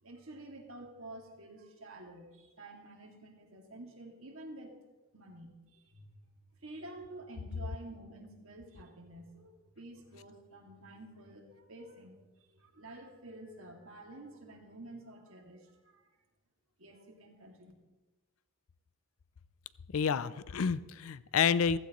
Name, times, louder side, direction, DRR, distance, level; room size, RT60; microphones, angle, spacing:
voice 1, 0.0-4.7 5.1-6.2 6.6-16.1 16.8-17.7, right 1 dB, 70° right, 1 dB, 2.2 m, -50 dB
voice 2, 19.9-21.8, left 6 dB, 75° left, 17 dB, 0.4 m, -29 dB
15.5 x 15.0 x 3.1 m, 1.2 s
head